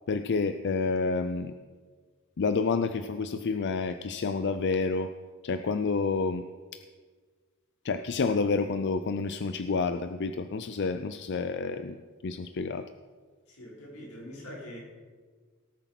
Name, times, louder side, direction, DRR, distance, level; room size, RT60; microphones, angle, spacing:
voice 1, 0.1-1.5 2.4-5.1 5.4-6.4 6.7-6.8 7.8-12.8, left 4 dB, 55° left, 10 dB, 0.5 m, -29 dB
voice 2, 13.5-14.8, left 1 dB, 85° left, -4 dB, 5.3 m, -43 dB
18.0 x 8.1 x 6.0 m, 1.5 s
head